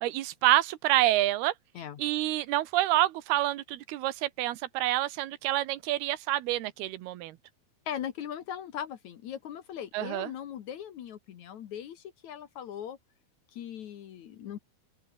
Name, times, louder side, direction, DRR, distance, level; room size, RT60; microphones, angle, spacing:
voice 1, 0.0-1.5 2.0-7.4 9.9-10.3, right 15 dB, 90° right, 3.1 m, -27 dB
voice 2, 7.9-13.0 13.5-14.6, left 9 dB, 60° left, 2.3 m, -39 dB
open air
omnidirectional pair, 4.4 m